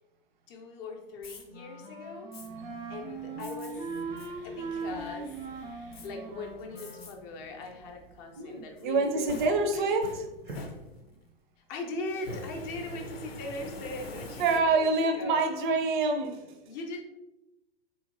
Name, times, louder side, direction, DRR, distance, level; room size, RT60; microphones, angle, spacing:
voice 1, 0.5-2.3 2.9-3.9 4.4-5.5 6.0-9.8 11.6-15.4 16.6-17.0, left 2 dB, 30° left, 2 dB, 0.6 m, -40 dB
Fire, 1.2-1.4 2.3-2.5 3.4-3.7 4.2-4.3 4.8-5.3 5.9-6.1 6.8-7.1 7.6-7.7 8.8-11.3 12.1-15.0, left 2 dB, 80° left, 0.6 m, -44 dB
Wind instrument woodwind instrument, 1.5-7.1, right 3 dB, 15° right, 0.3 m, -39 dB
sound 1, 2.4-11.0, right 2 dB, 80° right, 0.9 m, -51 dB
voice 2, 8.4-10.2 14.4-16.6, right 3 dB, 55° right, 5 dB, 0.6 m, -26 dB
3.8 x 2.8 x 2.5 m, 0.98 s
figure-of-eight pair, 100°, 30 cm